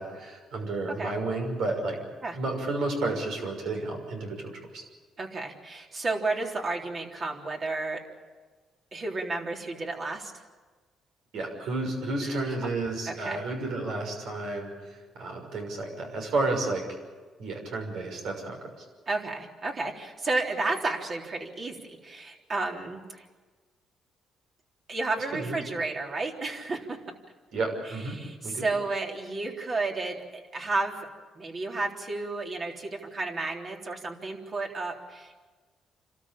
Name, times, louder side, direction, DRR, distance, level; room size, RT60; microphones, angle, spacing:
voice 1, 0.0-2.0 2.3-4.8 11.3-16.8 17.4-18.8 25.3-25.6 27.5-28.1 28.4-28.6, right 2 dB, 75° right, 2 dB, 6.1 m, -31 dB
voice 2, 5.2-8.0 8.9-10.4 12.2-12.4 13.1-13.4 19.1-23.3 24.9-27.0 27.8-31.0 31.4-35.4, right 3 dB, 45° right, 1 dB, 3.7 m, -32 dB
28.0 x 13.5 x 8.8 m, 1.4 s
cardioid pair, 85°, 0 cm